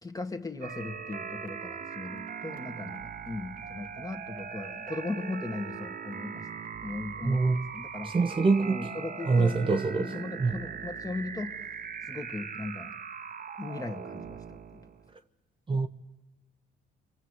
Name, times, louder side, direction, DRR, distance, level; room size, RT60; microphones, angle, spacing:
voice 1, 0.0-6.5 6.8-11.6 12.0-13.0 13.6-14.9, left 2 dB, 20° left, 2.0 m, -38 dB
sound 1, 0.6-15.1, right 6 dB, 45° right, 1.2 m, -40 dB
voice 2, 7.2-7.6 8.0-8.9 9.2-10.1 10.4-10.6 15.7-15.9, right 4 dB, 25° right, 0.9 m, -25 dB
30.0 x 22.5 x 8.2 m
cardioid pair, 90°, 20 cm